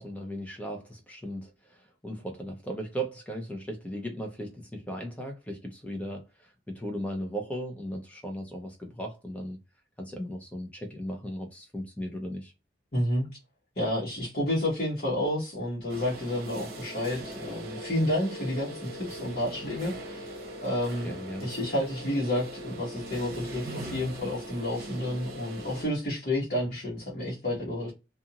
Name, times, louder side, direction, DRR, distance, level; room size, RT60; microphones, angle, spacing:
voice 1, 0.0-9.6 10.0-12.5 21.0-21.5, equal, 10° left, 0.7 m, -37 dB
voice 2, 12.9-13.3 13.8-20.3 20.6-27.9, left 1 dB, 50° left, 1.2 m, -30 dB
sound 1, 15.9-25.8, right 1 dB, 55° right, 0.9 m, -40 dB
2.5 x 2.5 x 2.8 m
head